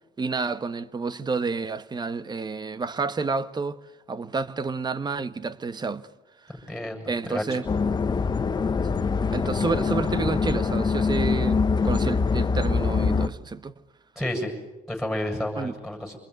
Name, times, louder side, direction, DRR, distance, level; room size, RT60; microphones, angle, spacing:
voice 1, 0.2-3.8 4.1-6.1 6.4-6.7 7.1-7.6 9.3-13.7 15.6-15.8, right 4 dB, 25° right, 1.1 m, -29 dB
voice 2, 6.5-7.6 14.2-14.5 14.9-16.2, left 1 dB, ahead, 7.5 m, -31 dB
sound 1, 7.7-13.3, left 5 dB, 25° left, 1.0 m, -24 dB
26.5 x 21.0 x 9.6 m
cardioid pair, 110°, 17 cm